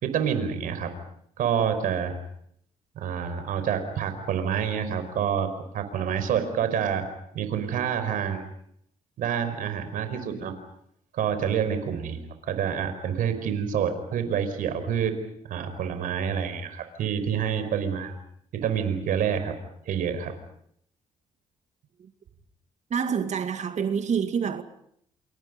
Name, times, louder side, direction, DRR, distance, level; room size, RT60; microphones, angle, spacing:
voice 1, 0.0-1.0 1.4-2.2 3.0-7.1 7.3-8.5 9.2-10.6 11.1-12.2 12.4-15.2 15.5-18.1 18.5-19.6 19.9-20.4, right 8 dB, 70° right, 5.1 m, -27 dB
voice 2, 22.9-24.6, right 7 dB, 55° right, 2.3 m, -27 dB
28.5 x 28.0 x 5.3 m
supercardioid pair, 60°, 15 cm